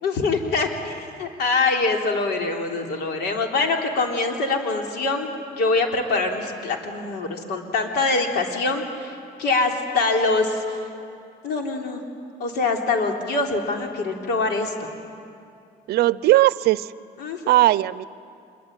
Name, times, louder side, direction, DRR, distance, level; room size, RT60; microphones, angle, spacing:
voice 1, 0.0-10.8 11.4-12.0 12.4-14.9 17.2-17.6, left 3 dB, 75° left, 2 dB, 3.6 m, -24 dB
voice 2, 15.9-16.9 17.5-18.0, right 16 dB, 70° right, 18 dB, 0.6 m, -18 dB
26.5 x 23.0 x 9.1 m, 2.4 s
cardioid pair, 110°, 17 cm